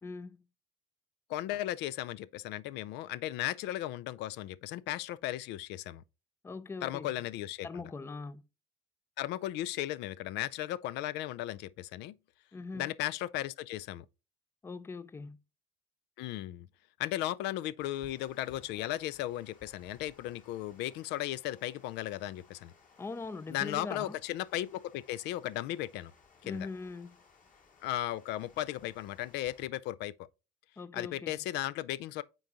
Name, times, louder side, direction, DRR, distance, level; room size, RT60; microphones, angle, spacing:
voice 1, 0.0-0.4 6.4-7.1 7.6-8.4 12.5-12.9 14.6-15.4 23.0-24.2 26.4-27.2 30.8-31.4, left 4 dB, 15° left, 0.4 m, -41 dB
voice 2, 1.3-6.0 6.8-7.8 9.2-12.2 12.7-14.1 16.2-16.7 17.0-22.7 23.5-26.1 26.4-26.7 27.8-30.3 30.9-32.2, left 14 dB, 85° left, 0.4 m, -36 dB
Water, 17.8-29.7, left 4 dB, 50° left, 2.6 m, -62 dB
8.9 x 3.9 x 2.9 m
cardioid pair, 110°, 17 cm